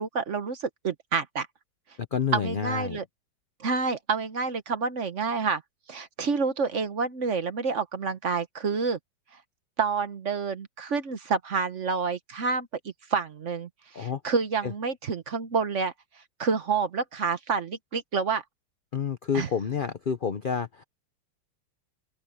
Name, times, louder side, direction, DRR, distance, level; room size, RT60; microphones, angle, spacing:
voice 1, 0.0-1.5 2.3-3.0 3.6-5.6 5.9-9.0 9.8-12.7 13.1-13.7 13.9-15.9 16.4-18.4 19.3-19.5, right 5 dB, 45° right, 1.2 m, -28 dB
voice 2, 2.1-3.0 13.9-14.2 14.6-14.7 18.9-20.8, left 7 dB, 75° left, 0.4 m, -29 dB
omnidirectional pair, 2.0 m